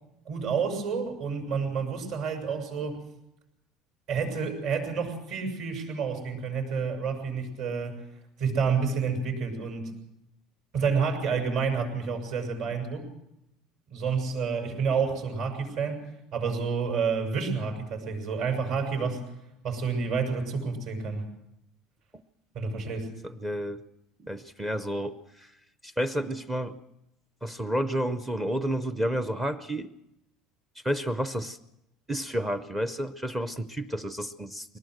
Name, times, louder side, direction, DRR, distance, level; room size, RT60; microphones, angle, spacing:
voice 1, 0.3-3.0 4.1-8.0 8.4-9.9 10.7-13.1 13.9-16.0 16.3-19.2 19.6-21.3 22.5-23.1, right 5 dB, 50° right, 4 dB, 6.8 m, -29 dB
voice 2, 23.4-23.8 24.2-25.5 25.8-26.8 27.4-29.9 30.8-31.6 32.1-34.8, equal, 10° right, 10 dB, 0.6 m, -30 dB
22.5 x 18.5 x 6.5 m, 0.86 s
cardioid pair, 170°, 0 cm